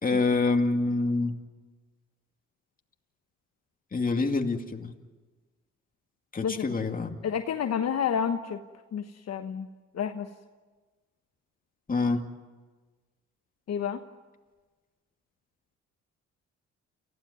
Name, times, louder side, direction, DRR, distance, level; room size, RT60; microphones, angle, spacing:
voice 1, 0.0-1.4 3.9-4.9 6.3-7.2 11.9-12.2, left 3 dB, 30° left, 4 dB, 2.4 m, -26 dB
voice 2, 7.2-8.6 8.9-9.7 9.9-10.3 13.7-14.0, left 8 dB, 60° left, 6 dB, 1.2 m, -29 dB
29.0 x 16.0 x 9.5 m, 1.3 s
cardioid pair, 90°, 30 cm